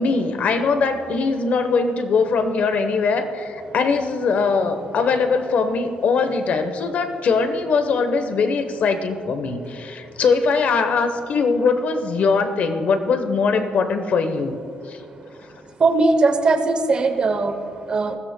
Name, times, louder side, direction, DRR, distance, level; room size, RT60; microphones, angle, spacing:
voice 1, 0.0-14.6 14.9-15.0, left 4 dB, 55° left, 8 dB, 0.9 m, -21 dB
voice 2, 15.8-17.6 17.9-18.2, right 3 dB, 35° right, 8 dB, 0.8 m, -19 dB
20.5 x 15.0 x 2.2 m, 2.5 s
cardioid pair, 150°, 3 cm